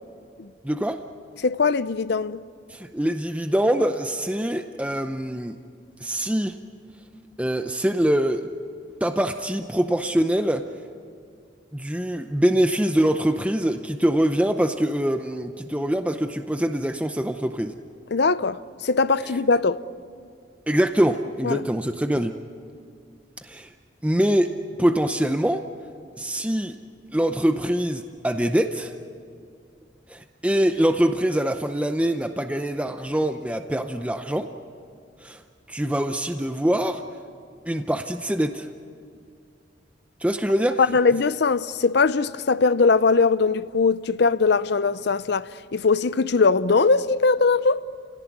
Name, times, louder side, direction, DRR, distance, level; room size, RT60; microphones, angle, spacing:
voice 1, 0.6-1.0 2.7-5.6 6.0-6.6 7.4-8.5 9.0-10.6 11.7-17.7 19.2-19.3 20.7-22.3 23.4-23.7 24.0-24.5 24.8-25.6 26.2-26.8 27.1-28.9 30.1-34.5 35.2-35.4 35.7-37.0 37.7-38.7 40.2-40.8, equal, 5° right, 0.6 m, -24 dB
voice 2, 1.4-2.4 18.1-19.8 21.4-21.6 40.8-47.8, left 4 dB, 60° left, 0.6 m, -21 dB
29.5 x 17.5 x 9.6 m
head